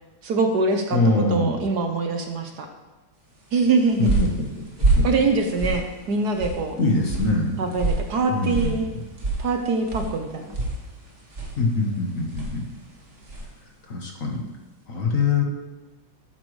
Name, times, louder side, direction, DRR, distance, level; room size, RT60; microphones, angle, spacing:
voice 1, 0.2-1.0 1.3-2.7 3.5-4.1 5.0-6.7 7.6-8.9 9.4-10.5, right 3 dB, 60° right, 4 dB, 1.3 m, -23 dB
voice 2, 0.9-1.6 4.0-4.5 4.8-5.1 6.8-7.6 8.3-9.0 11.6-12.7 13.9-14.4 14.9-15.4, left 3 dB, 45° left, 1 dB, 1.5 m, -23 dB
sound 1, 3.5-13.6, right 2 dB, 35° right, 2.1 m, -28 dB
12.5 x 8.7 x 3.2 m, 1.2 s
omnidirectional pair, 2.1 m